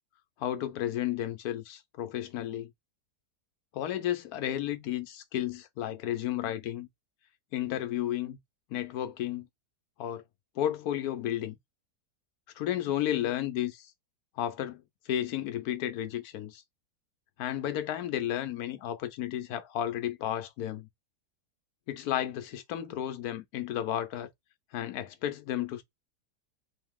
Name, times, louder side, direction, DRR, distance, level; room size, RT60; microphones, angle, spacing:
voice 1, 0.4-2.7 3.7-6.9 7.5-8.4 8.7-9.5 10.0-10.2 10.6-11.6 12.6-13.9 14.4-14.8 15.1-16.6 17.4-20.9 21.9-24.3 24.7-25.8, left 11 dB, 75° left, 1.2 m, -32 dB
3.7 x 2.8 x 3.5 m
omnidirectional pair, 1.7 m